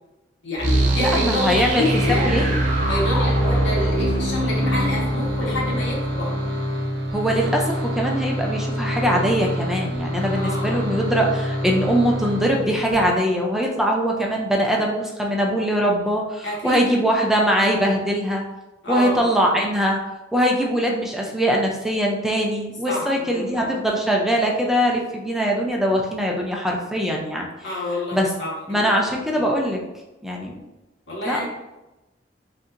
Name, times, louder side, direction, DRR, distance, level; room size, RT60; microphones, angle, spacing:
voice 1, 0.4-2.2 2.9-6.4 10.4-10.9 16.4-16.9 18.8-19.4 22.8-23.7 27.6-28.9 29.3-29.4 31.1-31.5, left 1 dB, 85° left, -5 dB, 1.5 m, -28 dB
sound 1, 0.6-7.4, right 1 dB, 45° right, 0.7 m, -24 dB
voice 2, 1.0-1.8 2.2-2.6 7.1-18.4 18.9-20.0 20.3-27.5 28.1-28.3 28.7-29.8 30.2-30.5 31.2-31.5, equal, ahead, -1 dB, 0.4 m, -22 dB
sound 2, 1.7-13.0, equal, 70° right, 0.8 m, -27 dB
5.2 x 2.7 x 2.5 m, 1.0 s
head